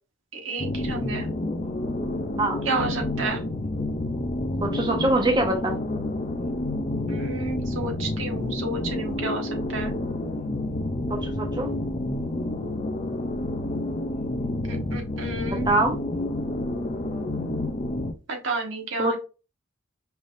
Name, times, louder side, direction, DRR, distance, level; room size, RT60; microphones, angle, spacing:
voice 1, 0.3-1.3 2.6-3.4 7.1-9.9 14.6-15.7 18.3-19.2, right 3 dB, 80° right, 1.3 m, -31 dB
sound 1, 0.6-18.1, left 1 dB, 35° left, 0.5 m, -29 dB
voice 2, 4.6-5.7 11.1-11.7 15.7-16.0 19.0-19.2, right 2 dB, 20° right, 0.9 m, -23 dB
5.5 x 3.3 x 2.6 m
head